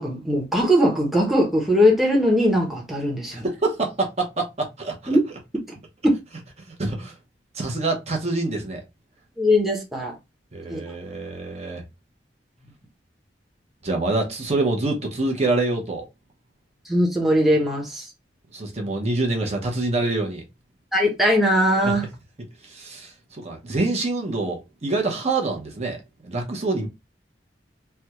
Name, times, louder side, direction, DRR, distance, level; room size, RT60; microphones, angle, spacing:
voice 1, 0.0-3.5 5.1-5.2 9.4-10.1 10.7-10.8 16.9-18.1 20.9-22.0, equal, ahead, 0.8 m, -20 dB
voice 2, 3.3-5.2 6.7-7.2 7.5-8.8 10.5-11.8 13.8-16.0 18.5-20.4 21.8-21.9 22.6-26.0 26.2-26.9, right 2 dB, 35° right, 0.9 m, -26 dB
3.4 x 2.2 x 2.9 m
head